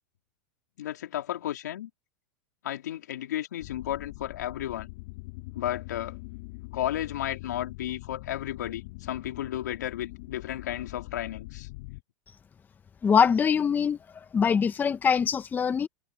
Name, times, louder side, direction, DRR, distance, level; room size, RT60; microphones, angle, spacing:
voice 1, 0.8-1.9 2.6-4.9 5.5-6.2 6.7-11.7, left 12 dB, 85° left, 3.6 m, -33 dB
sound 1, 3.6-12.0, left 24 dB, 65° left, 5.7 m, -43 dB
voice 2, 13.0-14.0 14.3-15.9, left 7 dB, 20° left, 1.0 m, -23 dB
hypercardioid pair, 120°, 9 cm